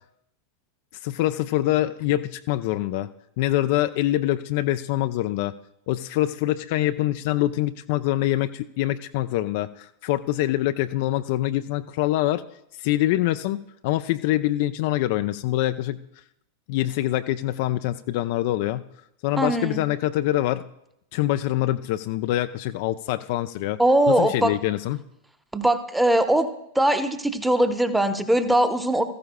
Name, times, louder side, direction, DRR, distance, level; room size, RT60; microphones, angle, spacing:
voice 1, 1.0-3.1 3.4-5.5 5.9-12.4 12.8-13.6 13.8-16.0 16.7-18.8 19.2-20.7 21.1-23.8 24.1-25.0, left 15 dB, 50° left, 10 dB, 0.4 m, -24 dB
voice 2, 19.4-19.8 23.8-24.5 25.5-26.5 26.7-29.0, right 1 dB, 5° right, 9 dB, 0.9 m, -21 dB
16.0 x 14.5 x 2.3 m, 0.80 s
figure-of-eight pair, 90°, 0 cm